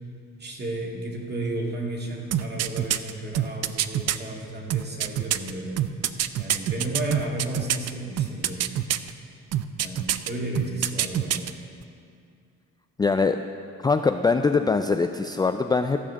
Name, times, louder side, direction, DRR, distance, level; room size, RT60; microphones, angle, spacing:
voice 1, 0.4-5.9 6.4-8.7 9.8-11.6, right 1 dB, 35° right, -1 dB, 2.1 m, -33 dB
sound 1, 2.3-4.2 4.7-7.9 8.2-9.1 9.5-10.3 10.5-11.5 11.8-11.9, right 12 dB, 55° right, 0.5 m, -25 dB
voice 2, 13.0-13.4 13.8-16.0, left 4 dB, 15° left, 7 dB, 0.3 m, -22 dB
14.5 x 5.0 x 7.0 m, 2.4 s
cardioid pair, 90°, 30 cm